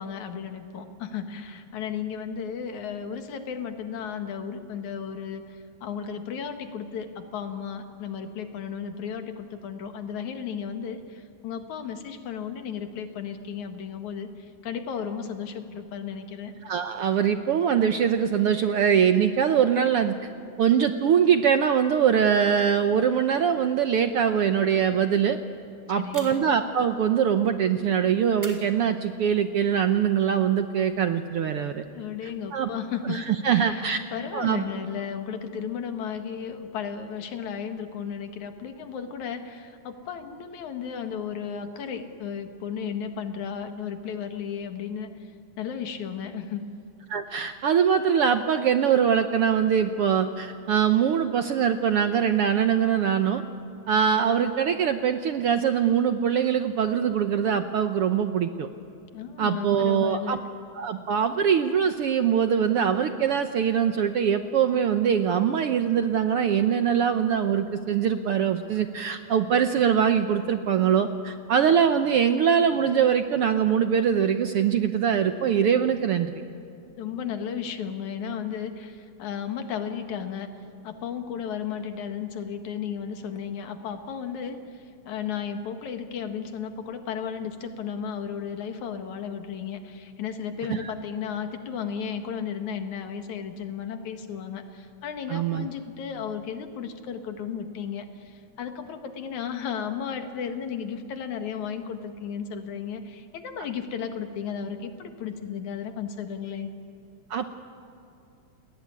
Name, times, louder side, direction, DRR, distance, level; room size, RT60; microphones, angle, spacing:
voice 1, 0.0-16.5 26.0-26.4 31.9-45.3 45.6-46.7 59.1-60.4 77.0-80.5 80.8-106.7, left 7 dB, 70° left, 7 dB, 3.0 m, -34 dB
voice 2, 16.6-20.2 20.6-25.4 25.9-31.8 32.2-32.7 33.0-34.0 34.3-34.6 47.1-53.4 53.9-58.7 59.4-60.4 60.7-76.3 90.7-90.9 95.3-95.7 107.3-107.5, right 8 dB, 65° right, 8 dB, 1.5 m, -23 dB
sound 1, 26.1-26.7 28.4-29.4, right 1 dB, 5° right, 3.1 m, -45 dB
29.5 x 21.0 x 9.6 m, 2.7 s
omnidirectional pair, 3.5 m